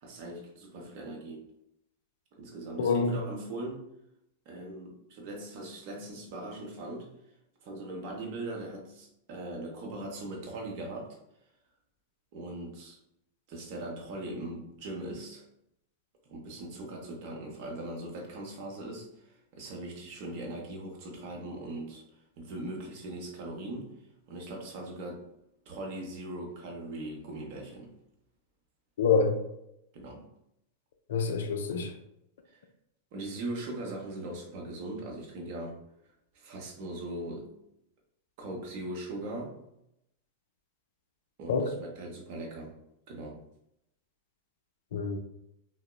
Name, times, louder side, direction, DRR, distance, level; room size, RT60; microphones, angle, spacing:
voice 1, 0.0-1.4 2.3-3.9 4.5-7.1 7.6-11.2 12.3-13.0 13.5-15.4 16.3-23.9 24.3-25.2 25.7-27.9 29.9-30.3 32.5-32.6 33.1-35.8 36.3-37.5 38.4-39.6 41.4-42.7 43.1-43.4, right 2 dB, 45° right, 0 dB, 0.7 m, -40 dB
voice 2, 2.8-3.2 29.0-29.3 31.1-31.9 41.5-41.7 44.9-45.2, left 5 dB, 60° left, 5 dB, 0.3 m, -26 dB
3.6 x 2.0 x 2.2 m, 0.81 s
figure-of-eight pair, 90°, 0 cm